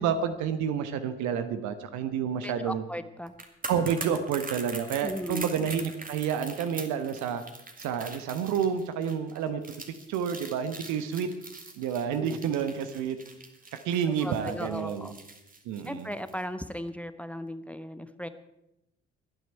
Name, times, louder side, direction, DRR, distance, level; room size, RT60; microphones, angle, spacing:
voice 1, 0.0-2.8 3.7-7.4 7.8-9.6 10.1-11.3 11.8-13.2 13.8-15.1 15.6-16.1, right 7 dB, 65° right, 9 dB, 1.2 m, -29 dB
voice 2, 2.4-3.3 5.0-5.4 12.1-12.4 14.1-15.1 15.8-18.3, equal, 5° left, 11 dB, 1.0 m, -37 dB
sound 1, 3.3-16.4 16.7-16.9, right 3 dB, 25° right, 2.3 m, -43 dB
22.0 x 9.5 x 4.6 m, 0.89 s
figure-of-eight pair, 45°, 32 cm